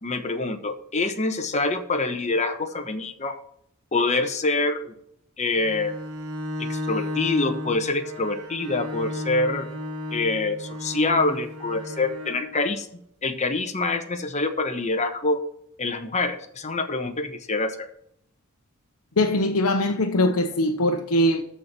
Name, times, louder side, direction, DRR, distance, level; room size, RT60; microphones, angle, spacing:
voice 1, 0.0-3.4 3.9-4.9 5.4-5.9 6.6-9.7 10.1-12.9 13.2-15.4 15.8-17.9, left 3 dB, 30° left, 1.1 m, -26 dB
Bowed string instrument, 5.5-12.6, left 1 dB, 80° right, 1.5 m, -33 dB
voice 2, 19.2-21.4, left 1 dB, 90° left, 0.9 m, -21 dB
13.5 x 4.6 x 6.0 m
head